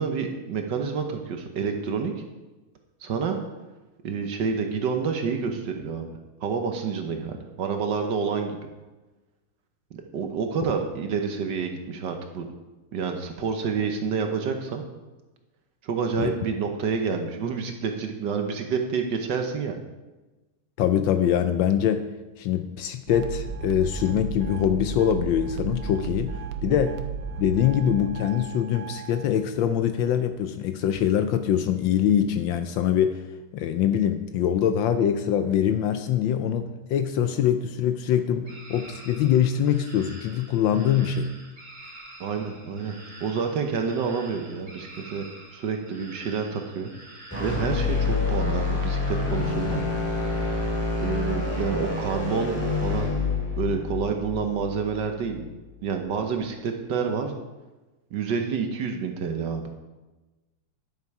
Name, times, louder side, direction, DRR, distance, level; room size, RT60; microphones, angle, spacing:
voice 1, 0.0-2.1 3.0-3.4 4.0-6.1 6.4-8.6 9.9-12.5 12.9-14.8 15.8-19.8 26.7-26.8 42.2-45.2 45.5-46.9 47.4-49.8 50.3-50.6 50.9-52.6 52.8-53.1 53.5-55.5 55.8-57.4 58.1-59.8, right 5 dB, 60° right, 5 dB, 1.4 m, -28 dB
voice 2, 20.8-22.1 22.4-27.0 27.4-33.2 33.5-41.3, left 9 dB, 75° left, 9 dB, 1.2 m, -24 dB
sound 1, 23.1-29.3, right 6 dB, 85° right, 1.7 m, -34 dB
sound 2, 38.4-47.7, right 1 dB, 25° right, 1.5 m, -47 dB
sound 3, 47.3-55.4, left 3 dB, 5° left, 2.0 m, -27 dB
11.0 x 7.0 x 4.7 m, 1.1 s
omnidirectional pair, 2.4 m